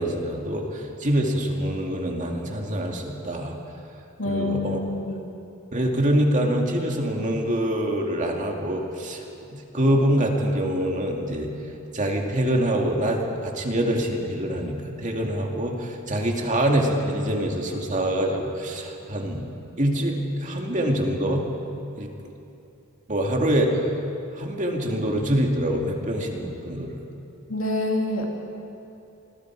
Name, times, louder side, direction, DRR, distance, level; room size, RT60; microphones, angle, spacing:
voice 1, 0.0-3.5 4.2-4.8 5.7-9.2 9.5-11.5 11.9-19.5 19.8-21.5 22.0-22.1 23.1-23.9 24.4-27.0, right 1 dB, 35° right, 1 dB, 2.3 m, -25 dB
voice 2, 4.2-5.3 27.5-28.3, left 2 dB, 70° left, 0 dB, 2.9 m, -27 dB
28.0 x 20.5 x 4.7 m, 2.8 s
head